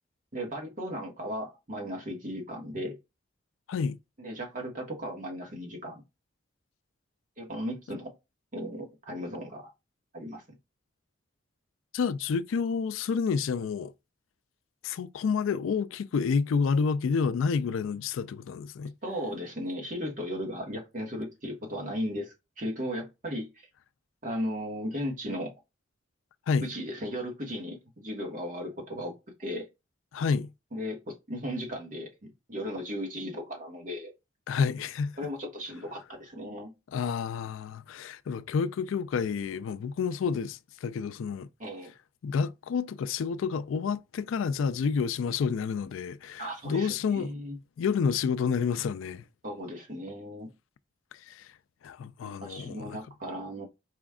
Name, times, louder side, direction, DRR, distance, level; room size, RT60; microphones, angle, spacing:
voice 1, 0.3-3.0 4.2-6.0 7.4-8.1 8.5-9.7 10.1-10.4 19.0-23.7 24.2-25.5 26.6-29.1 29.4-29.7 30.7-34.1 35.2-36.7 41.6-41.9 46.4-47.6 49.4-50.5 52.4-53.7, equal, 40° right, 1.3 m, -36 dB
voice 2, 11.9-13.9 14.8-18.9 26.5-26.7 30.1-30.5 34.5-35.2 36.9-41.5 42.2-47.3 47.8-49.2 51.3-51.5 51.8-53.0, left 5 dB, 80° left, 0.3 m, -29 dB
5.0 x 2.3 x 3.5 m
head